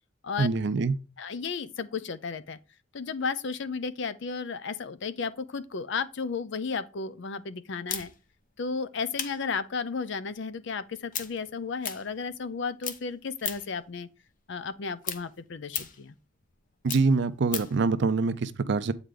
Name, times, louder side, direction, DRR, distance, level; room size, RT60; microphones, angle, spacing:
voice 1, 0.4-0.9 16.8-18.9, right 4 dB, 60° right, 0.5 m, -25 dB
voice 2, 1.2-2.6 2.9-8.1 8.6-14.1 14.5-16.2, left 5 dB, 65° left, 0.5 m, -33 dB
sound 1, 7.9-12.6 12.8-13.8 14.2-17.8, left 8 dB, 45° left, 0.8 m, -37 dB
8.0 x 4.9 x 3.8 m
head